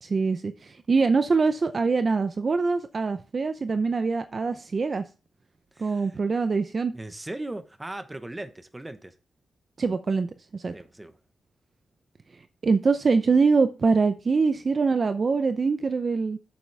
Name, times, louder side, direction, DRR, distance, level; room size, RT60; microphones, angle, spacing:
voice 1, 0.0-5.0 5.8-6.9 9.8-10.3 10.5-10.7 12.6-16.4, right 4 dB, 40° right, 0.6 m, -24 dB
voice 2, 5.7-6.2 6.9-9.1 10.7-11.2, right 1 dB, 15° right, 1.0 m, -38 dB
8.6 x 7.1 x 3.4 m
wide cardioid pair, 130°, 0 cm